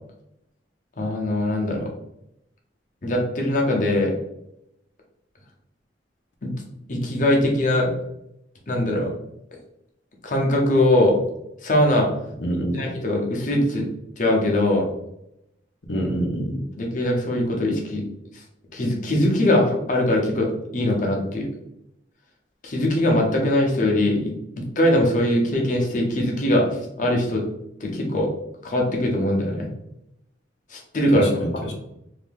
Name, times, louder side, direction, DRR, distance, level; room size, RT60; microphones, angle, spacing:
voice 1, 1.0-1.9 3.0-4.2 6.4-6.5 6.9-7.9 8.7-9.1 10.2-11.2 11.6-12.1 12.7-13.9 14.2-14.9 16.8-18.0 18.7-21.5 22.6-26.7 27.0-27.4 27.8-28.3 28.6-29.7 30.7-31.4, left 1 dB, 45° left, 0 dB, 0.8 m, -21 dB
voice 2, 12.4-12.9 15.9-16.6 31.1-31.7, right 1 dB, 80° left, 1 dB, 0.8 m, -26 dB
2.8 x 2.6 x 3.5 m, 0.79 s
head